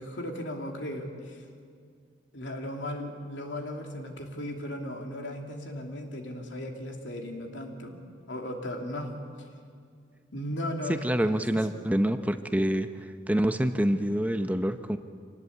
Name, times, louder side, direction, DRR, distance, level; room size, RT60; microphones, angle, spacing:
voice 1, 0.0-1.4 2.3-9.2 10.3-11.6, left 1 dB, 85° left, 3 dB, 2.9 m, -36 dB
voice 2, 10.9-12.9 13.3-15.0, right 1 dB, 10° right, 8 dB, 0.7 m, -26 dB
25.5 x 19.0 x 8.4 m, 2.2 s
head